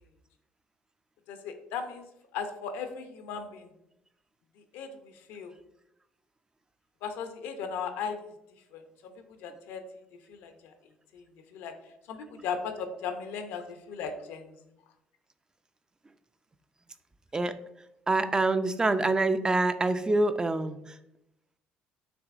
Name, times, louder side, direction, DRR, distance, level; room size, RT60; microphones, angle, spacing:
voice 1, 1.3-2.0 2.3-3.7 4.7-5.5 7.0-8.3 8.7-9.1 9.4-9.8 10.3-10.7 11.1-11.2 11.5-11.7 12.1-14.5, left 6 dB, 80° left, 7 dB, 0.6 m, -37 dB
voice 2, 18.1-21.0, right 2 dB, 20° right, 10 dB, 0.3 m, -26 dB
5.9 x 3.2 x 2.5 m, 0.84 s
supercardioid pair, 75°, 4 cm